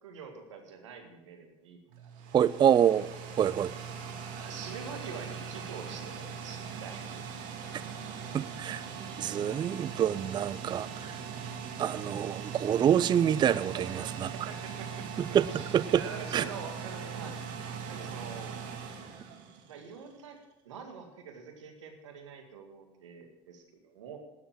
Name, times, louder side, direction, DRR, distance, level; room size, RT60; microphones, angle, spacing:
voice 1, 0.0-2.4 4.4-7.1 7.7-8.3 13.7-17.4 17.9-18.5 19.7-20.4 20.6-24.2, right 6 dB, 90° right, 4 dB, 2.1 m, -45 dB
sound 1, 1.9-20.0, right 6 dB, 60° right, 2.2 m, -40 dB
voice 2, 2.3-3.1 3.4-3.7 8.3-8.8 9.2-11.1 11.8-14.3 15.2-15.5 15.7-16.0 16.3-16.5, right 9 dB, 30° right, 17 dB, 0.4 m, -26 dB
12.5 x 7.0 x 9.1 m, 1.1 s
hypercardioid pair, 85°, 15 cm